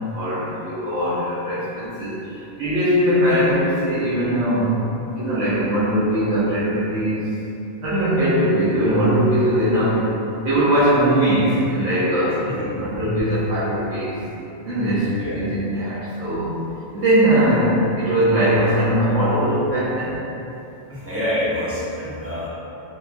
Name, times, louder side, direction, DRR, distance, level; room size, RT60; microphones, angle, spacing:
voice 1, 0.1-7.3 7.8-12.5 12.8-14.2 14.6-16.6 16.9-20.2, equal, 75° right, -11 dB, 1.0 m, -20 dB
voice 2, 12.5-12.8 15.1-15.4 20.9-22.5, left 1 dB, 15° right, -11 dB, 0.5 m, -27 dB
3.6 x 2.2 x 2.5 m, 2.9 s
omnidirectional pair, 1.3 m